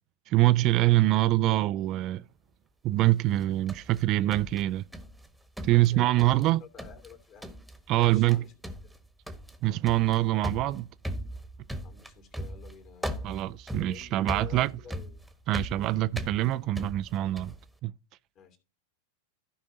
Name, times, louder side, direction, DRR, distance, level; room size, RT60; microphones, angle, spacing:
voice 1, 0.3-2.2 2.8-4.8 5.6-6.6 7.9-8.4 9.6-10.9 13.2-14.7 15.5-17.5 17.8-17.9, right 16 dB, 45° right, 0.4 m, -24 dB
sound 1, 3.3-5.3 5.6-6.5 6.8-7.1 7.4-7.8 8.0-8.4 8.6-17.6, equal, ahead, 1.4 m, -38 dB
voice 2, 5.6-8.5 8.8-8.9 11.8-13.3 13.7-15.2 18.3-18.6, left 7 dB, 40° left, 2.7 m, -50 dB
15.5 x 5.2 x 2.8 m
figure-of-eight pair, 90°, 0 cm